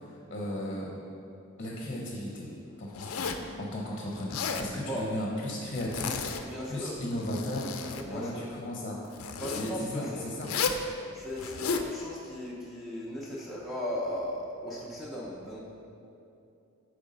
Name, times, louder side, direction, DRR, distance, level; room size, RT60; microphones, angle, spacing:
voice 1, 0.3-0.9 1.6-2.5 2.8-3.3 3.6-9.0 9.5-10.7, left 1 dB, 35° left, -2 dB, 0.8 m, -35 dB
Zipper (clothing), 2.9-3.5 4.2-4.7 5.7-6.5 7.1-8.1 9.1-9.7 10.4-10.8 11.4-11.9, left 5 dB, 80° left, 0.4 m, -33 dB
voice 2, 4.7-5.1 6.5-7.0 7.9-8.5 9.3-10.3 11.1-15.6, left 1 dB, ahead, -6 dB, 0.6 m, -37 dB
8.0 x 3.3 x 5.4 m, 2.6 s
head